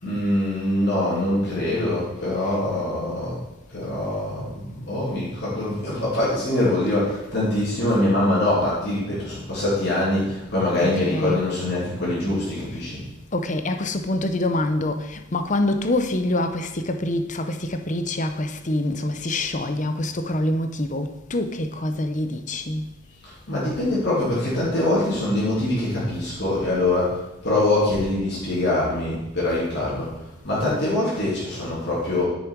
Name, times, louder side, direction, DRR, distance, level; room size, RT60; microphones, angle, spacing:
voice 1, 0.0-3.4 3.7-13.0 23.5-30.1 30.4-32.3, left 1 dB, 55° left, 2.9 m, -23 dB
voice 2, 10.8-11.5 13.3-22.9, left 1 dB, 35° left, 0.8 m, -25 dB
10.0 x 7.2 x 4.7 m
head